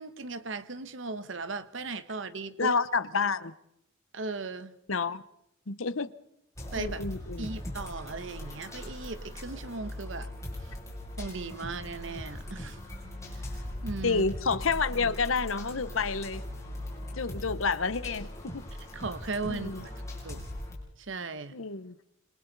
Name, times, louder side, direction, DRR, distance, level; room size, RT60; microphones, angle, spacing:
voice 1, 0.0-2.8 4.1-4.7 6.7-7.0 7.4-10.3 10.6-10.7 11.2-12.8 13.3-13.4 13.8-14.2 18.9-19.9 20.2-20.4 21.0-21.6, right 3 dB, 65° right, 1.1 m, -37 dB
voice 2, 2.6-3.5 4.9-5.2 5.7-6.1 6.8-7.5 14.0-16.4 17.2-18.6 19.5-19.8 21.5-21.9, left 4 dB, 90° left, 1.1 m, -29 dB
sound 1, 6.6-20.7, left 1 dB, 15° left, 7.1 m, -40 dB
27.5 x 26.5 x 4.1 m
head